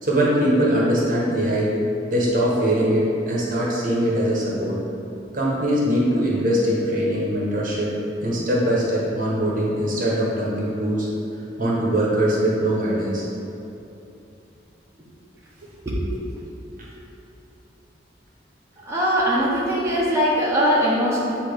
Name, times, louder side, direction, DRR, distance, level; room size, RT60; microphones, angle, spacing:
voice 1, 0.0-1.7 2.1-4.8 5.3-7.9 8.2-11.1 11.6-13.2, right 1 dB, 45° right, -5 dB, 1.1 m, -22 dB
voice 2, 18.9-21.3, equal, 15° right, -8 dB, 1.0 m, -21 dB
8.3 x 2.8 x 5.1 m, 2.9 s
head